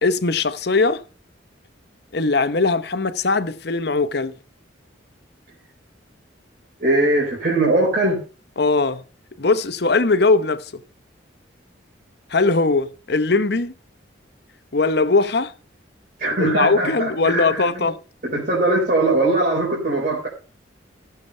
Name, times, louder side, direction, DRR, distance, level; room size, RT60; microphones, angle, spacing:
voice 1, 0.0-1.0 2.1-4.3 8.6-9.0 9.4-10.7 12.3-13.7 14.7-15.5 16.4-18.0, left 3 dB, 55° left, 0.8 m, -20 dB
voice 2, 6.8-8.2 16.2-17.9 18.2-20.3, right 2 dB, 50° right, 3.8 m, -20 dB
15.5 x 6.8 x 5.4 m
head